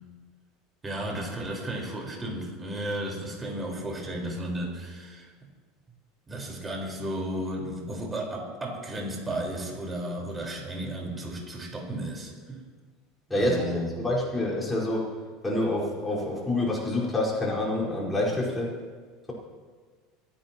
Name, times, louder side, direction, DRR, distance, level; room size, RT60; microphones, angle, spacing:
voice 1, 0.8-5.3 6.3-12.6 13.3-14.0, right 1 dB, 20° right, -1 dB, 4.7 m, -34 dB
voice 2, 13.3-15.1 15.4-18.7, left 1 dB, 15° left, -5 dB, 4.9 m, -27 dB
26.5 x 11.5 x 3.0 m, 1.5 s
hypercardioid pair, 80°, 0 cm